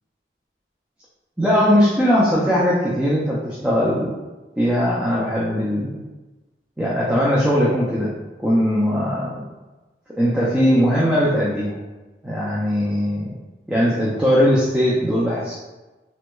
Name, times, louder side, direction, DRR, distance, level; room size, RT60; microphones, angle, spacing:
voice 1, 1.4-4.2 4.6-6.0 6.8-8.1 8.4-9.3 10.1-11.8 12.2-13.3 13.7-15.5, equal, 5° right, -7 dB, 0.4 m, -19 dB
3.3 x 3.0 x 2.2 m, 1.1 s
head